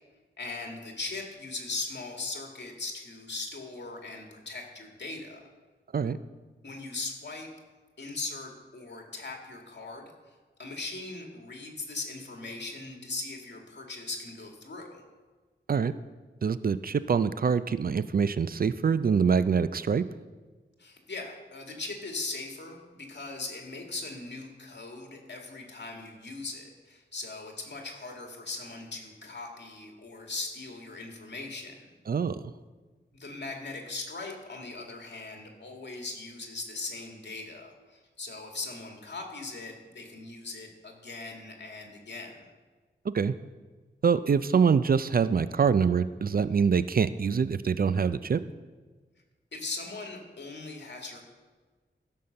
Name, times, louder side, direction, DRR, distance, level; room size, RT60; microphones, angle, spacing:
voice 1, 0.4-5.5 6.6-7.5 8.0-15.0 20.8-31.9 33.1-42.4 49.5-51.2, left 3 dB, 65° left, 1 dB, 2.1 m, -39 dB
voice 2, 16.4-20.0 32.1-32.4 43.1-43.3 44.0-48.4, right 6 dB, 50° right, 14 dB, 0.4 m, -25 dB
15.5 x 5.6 x 6.6 m, 1.3 s
wide cardioid pair, 110°, 19 cm